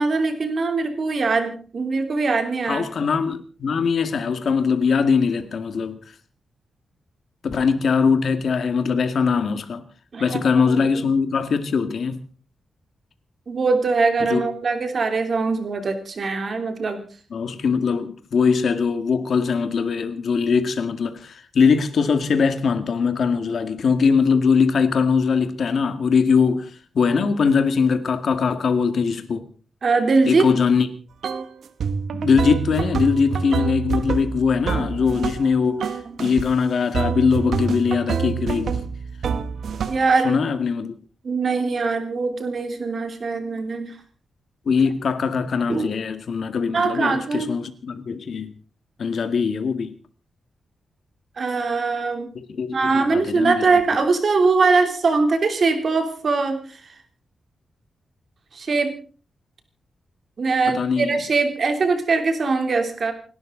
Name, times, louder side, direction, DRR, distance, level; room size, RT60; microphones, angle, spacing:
voice 1, 0.0-2.9 10.1-10.4 10.7-11.1 13.5-17.0 29.8-30.4 36.1-36.2 39.9-40.4 41.2-44.0 45.7-45.9 46.7-47.5 51.4-52.3 52.7-56.8 58.5-58.9 60.4-63.1, right 4 dB, 45° right, 3.1 m, -22 dB
voice 2, 2.7-6.0 7.4-9.8 10.2-12.2 14.2-14.5 17.3-26.7 27.0-29.5 30.3-30.9 32.1-35.9 36.2-38.8 40.2-40.9 44.7-48.5 49.0-49.9 52.4-53.7 60.7-61.2, left 5 dB, 60° left, 1.9 m, -21 dB
sound 1, 31.2-31.5 31.8-35.5 35.8-36.5 36.9-40.1, right 6 dB, 70° right, 1.3 m, -27 dB
29.5 x 12.0 x 3.9 m
wide cardioid pair, 140°, 0 cm